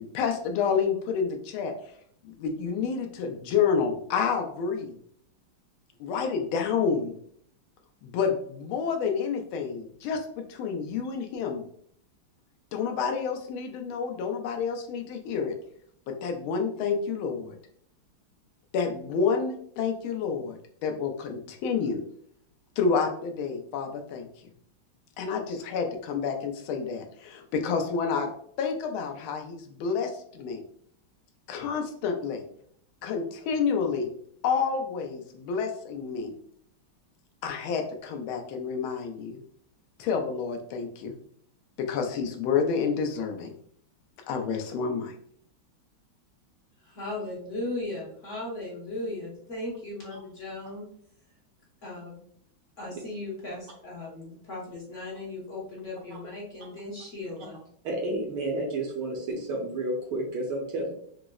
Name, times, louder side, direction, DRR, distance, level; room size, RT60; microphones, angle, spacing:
voice 1, 0.0-1.7 2.2-4.9 6.0-7.1 8.0-11.6 12.7-15.6 16.1-17.5 18.7-22.0 22.8-24.3 25.2-28.3 28.6-30.6 31.5-32.4 33.0-34.1 34.4-36.3 37.4-39.4 40.0-41.1 41.8-43.5 44.3-45.1, left 6 dB, 85° left, 4 dB, 1.4 m, -29 dB
voice 2, 46.8-50.9 51.8-52.2 52.8-57.6, left 2 dB, 50° left, -5 dB, 1.0 m, -37 dB
voice 3, 57.8-60.9, right 2 dB, 70° right, 0 dB, 1.2 m, -31 dB
4.8 x 2.0 x 2.3 m, 0.63 s
omnidirectional pair, 2.3 m